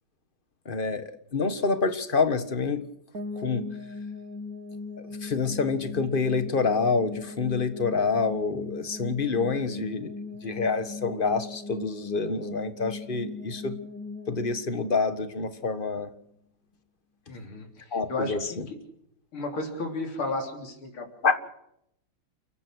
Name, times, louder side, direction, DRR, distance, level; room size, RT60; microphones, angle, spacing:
voice 1, 0.7-2.8 3.4-3.7 5.2-10.1 10.4-13.7 14.3-16.1 17.9-18.7 21.2-21.3, left 4 dB, 25° left, 11 dB, 1.6 m, -27 dB
sound 1, 3.1-16.0, left 3 dB, 45° right, 2.5 m, -39 dB
voice 2, 17.3-18.4 19.3-21.1, left 2 dB, 85° left, 3 dB, 4.3 m, -33 dB
29.5 x 15.0 x 6.4 m, 0.76 s
omnidirectional pair, 2.3 m